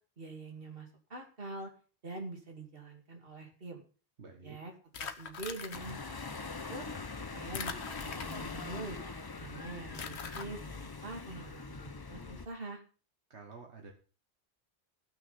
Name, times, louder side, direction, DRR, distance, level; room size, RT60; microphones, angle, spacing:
voice 1, 0.2-1.7 2.0-3.8 4.4-4.7 5.0-6.9 7.3-9.0 9.4-12.8, right 2 dB, 55° right, 2 dB, 2.7 m, -45 dB
voice 2, 4.2-4.6 13.3-13.9, right 4 dB, 80° right, 2 dB, 1.8 m, -50 dB
sound 1, 4.9-5.9 7.5-8.7 9.9-10.5, left 6 dB, 75° left, 1.2 m, -42 dB
sound 2, 5.7-12.5, left 4 dB, 25° left, 0.6 m, -42 dB
15.0 x 6.2 x 5.6 m, 0.38 s
omnidirectional pair, 1.1 m